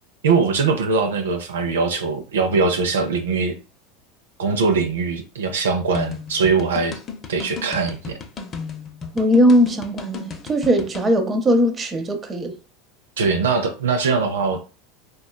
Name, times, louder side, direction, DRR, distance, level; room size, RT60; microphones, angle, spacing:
voice 1, 0.2-3.6 4.4-7.0 7.3-8.2 13.2-14.6, right 4 dB, 85° right, 0.5 m, -21 dB
sound 1, 5.9-11.1, left 5 dB, 35° left, 0.6 m, -34 dB
voice 2, 9.1-12.5, equal, 25° right, 0.7 m, -19 dB
3.5 x 2.2 x 2.2 m
hypercardioid pair, 95°, 0 cm